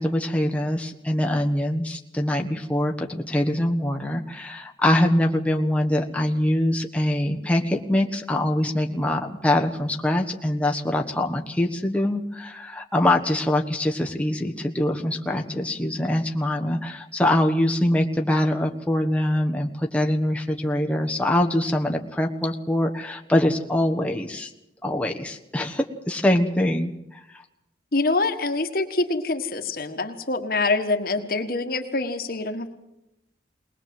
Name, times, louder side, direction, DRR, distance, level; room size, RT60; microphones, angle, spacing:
voice 1, 0.0-24.5 24.8-27.4, left 1 dB, 10° left, 2 dB, 1.3 m, -24 dB
voice 2, 27.9-32.7, left 3 dB, 55° left, 7 dB, 1.6 m, -25 dB
21.0 x 20.0 x 7.8 m, 0.87 s
head